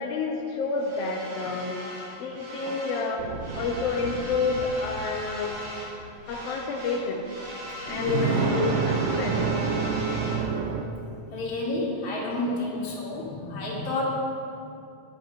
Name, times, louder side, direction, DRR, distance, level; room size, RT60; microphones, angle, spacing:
voice 1, 0.0-1.8 2.2-3.2 3.5-5.6 6.3-7.2 7.9-9.4 12.1-12.2, left 4 dB, 75° left, 0 dB, 1.5 m, -29 dB
sound 1, 0.8-3.1 3.4-6.0 6.2-10.4, equal, 70° right, 4.1 m, -39 dB
sound 2, 3.2-6.3 7.8-10.8, right 5 dB, 85° right, 2.3 m, -28 dB
voice 2, 9.8-10.4 11.0-14.0, left 2 dB, 55° left, -4 dB, 2.7 m, -31 dB
10.0 x 5.2 x 7.4 m, 2.6 s
omnidirectional pair, 3.6 m